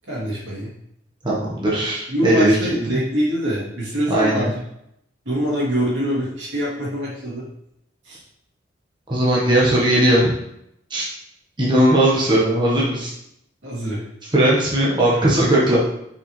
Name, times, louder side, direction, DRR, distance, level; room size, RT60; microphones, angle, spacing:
voice 1, 0.1-0.7 2.1-4.5 5.2-7.5 8.0-8.2 13.6-14.0, equal, 80° right, -6 dB, 2.7 m, -24 dB
voice 2, 1.2-2.6 4.1-4.5 9.1-10.4 10.9-11.1 11.6-13.1 14.3-15.8, right 1 dB, 25° right, -7 dB, 1.3 m, -18 dB
6.6 x 5.0 x 3.2 m, 0.77 s
head